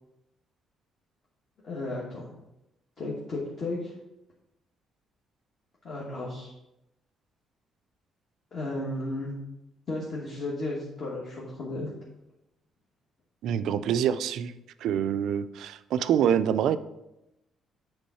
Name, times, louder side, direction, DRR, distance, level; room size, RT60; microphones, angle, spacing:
voice 1, 1.6-2.3 3.0-3.9 5.8-6.5 8.5-9.3 9.9-11.9, left 2 dB, 35° left, -5 dB, 1.3 m, -34 dB
voice 2, 13.4-14.5 14.8-16.8, right 9 dB, 70° right, 12 dB, 0.3 m, -26 dB
8.3 x 3.5 x 5.6 m, 0.90 s
cardioid pair, 180°, 0 cm